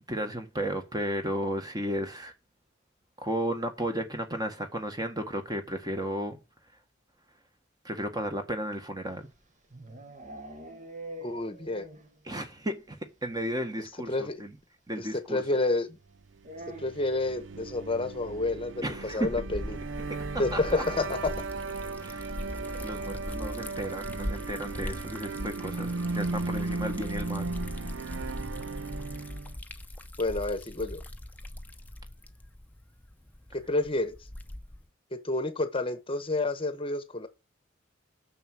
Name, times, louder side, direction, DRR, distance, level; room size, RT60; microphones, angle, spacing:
voice 1, 0.1-2.3 3.2-6.4 7.8-9.3 12.2-14.5 14.9-15.4 18.8-19.3 20.1-20.2 20.5-20.8 22.0-22.3 22.8-27.5, right 1 dB, 20° right, 1.6 m, -34 dB
sound 1, 9.1-12.2 12.5-12.6 12.9-13.0 13.2-13.4 14.6-14.7 16.4-17.3, right 1 dB, 40° right, 1.6 m, -44 dB
voice 2, 11.2-11.9 14.1-14.4 14.9-16.0 16.8-19.8 20.4-21.3 30.2-31.0 33.5-34.2 35.1-37.3, left 2 dB, 30° left, 1.0 m, -29 dB
sound 2, 16.6-29.6, right 3 dB, 75° right, 0.5 m, -36 dB
Liquid, 18.8-34.9, left 1 dB, 10° left, 0.8 m, -41 dB
6.8 x 6.3 x 7.6 m
head